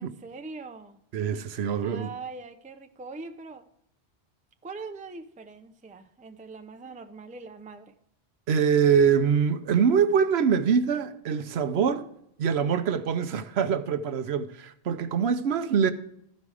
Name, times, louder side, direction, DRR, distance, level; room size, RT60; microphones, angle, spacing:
voice 1, 0.0-1.0 1.8-3.7 4.6-7.9, right 4 dB, 10° right, 0.4 m, -42 dB
voice 2, 1.1-2.1 8.5-12.1 12.4-15.9, right 7 dB, 75° right, 0.9 m, -24 dB
13.5 x 5.3 x 4.8 m
omnidirectional pair, 1.1 m